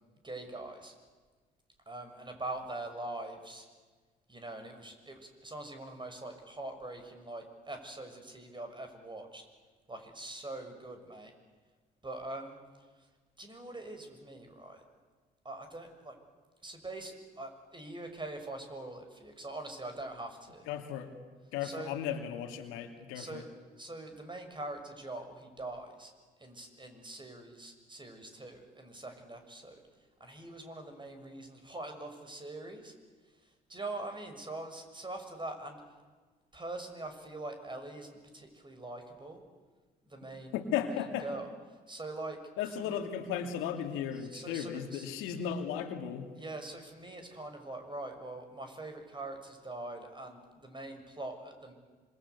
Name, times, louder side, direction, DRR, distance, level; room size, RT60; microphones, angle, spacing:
voice 1, 0.2-0.9 1.9-3.7 4.3-9.4 9.9-11.3 12.0-12.6 13.0-13.1 13.4-14.8 15.4-16.2 16.6-20.7 21.6-21.9 23.1-23.4 23.8-26.1 26.4-29.8 30.2-32.9 33.4-35.8 36.5-39.4 40.1-43.0 44.1-45.1 46.3-51.7, right 2 dB, 20° right, 6 dB, 6.5 m, -43 dB
voice 2, 20.7-21.1 21.5-23.4 40.5-41.3 42.6-46.3, left 8 dB, 75° left, 6 dB, 2.6 m, -35 dB
26.5 x 23.5 x 8.3 m, 1.4 s
hypercardioid pair, 50°, 21 cm